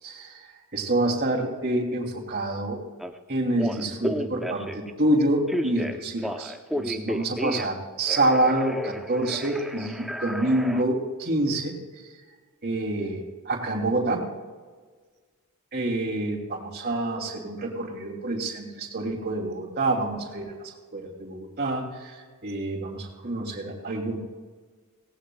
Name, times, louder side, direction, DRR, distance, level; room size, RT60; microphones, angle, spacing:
voice 1, 0.0-2.8 3.3-11.8 12.6-14.2 15.7-24.2, right 1 dB, 45° right, -1 dB, 2.8 m, -27 dB
Telephone, 3.0-3.1 3.5-4.9 5.5-7.8 8.1-10.8, equal, ahead, 0.7 m, -32 dB
18.5 x 18.0 x 2.4 m, 1.5 s
head